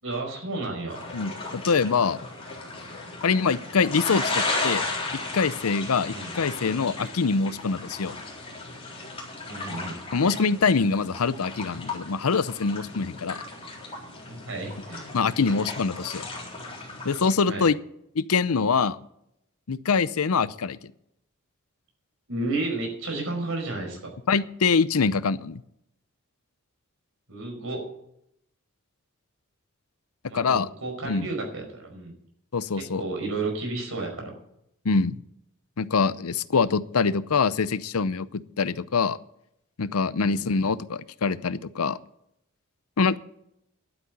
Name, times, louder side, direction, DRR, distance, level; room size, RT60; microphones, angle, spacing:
voice 1, 0.0-1.0 6.1-6.3 9.4-10.0 14.3-15.1 17.5-17.7 22.3-24.1 27.3-27.8 30.3-32.1 32.7-34.3 40.2-40.5, right 2 dB, 70° right, 2 dB, 5.3 m, -32 dB
sound 1, 0.9-17.3, left 3 dB, 25° left, 4.0 m, -35 dB
voice 2, 1.1-2.2 3.2-4.9 5.3-8.1 10.1-13.4 15.1-16.3 17.0-17.8 18.2-19.0 19.7-20.8 24.3-25.6 30.3-30.7 31.0-31.3 32.5-33.0 34.8-35.2 35.8-39.2 39.8-42.0 43.0-43.2, left 5 dB, 85° left, 16 dB, 0.7 m, -24 dB
11.5 x 9.6 x 8.1 m, 0.77 s
head